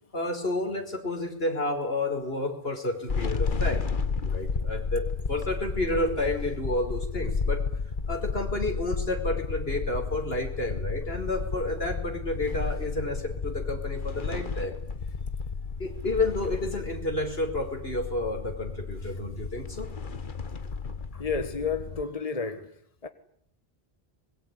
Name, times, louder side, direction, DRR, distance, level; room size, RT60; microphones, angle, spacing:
voice 1, 0.1-3.8 4.2-7.6 8.1-14.8 15.8-19.9, left 2 dB, 70° left, 5.3 m, -30 dB
sound 1, 3.1-22.0, left 5 dB, 50° left, 1.4 m, -32 dB
voice 2, 21.1-23.1, left 5 dB, 35° left, 1.6 m, -31 dB
25.0 x 22.0 x 10.0 m
omnidirectional pair, 1.1 m